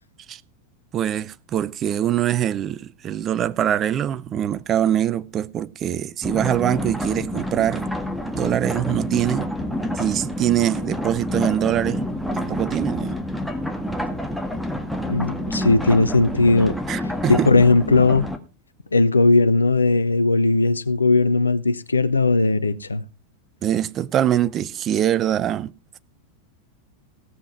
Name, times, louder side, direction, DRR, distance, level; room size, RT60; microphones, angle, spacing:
voice 1, 0.9-7.9 8.3-9.5 10.0-13.2 16.9-17.5 23.6-25.7, right 11 dB, 30° right, 0.7 m, -23 dB
sound 1, 6.2-18.4, left 1 dB, ahead, 1.6 m, -28 dB
voice 2, 15.1-16.7 17.3-18.3 18.9-23.0, left 3 dB, 80° left, 0.9 m, -18 dB
16.5 x 7.7 x 4.7 m
figure-of-eight pair, 90°, 0 cm